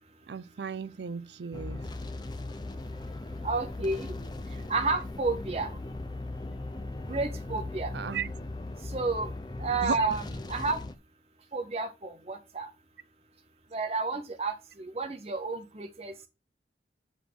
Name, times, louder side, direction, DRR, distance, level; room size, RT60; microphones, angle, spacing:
voice 1, 0.3-1.8 7.9-8.3 9.8-10.0, right 6 dB, 80° right, 0.5 m, -35 dB
sound 1, 1.5-10.9, left 2 dB, 25° left, 0.5 m, -38 dB
voice 2, 3.4-4.1 4.7-5.8 7.1-7.9 8.8-9.3 9.6-10.2 10.5-10.8 11.5-12.7 13.7-16.1, right 3 dB, 35° right, 0.7 m, -31 dB
7.7 x 3.5 x 5.9 m
head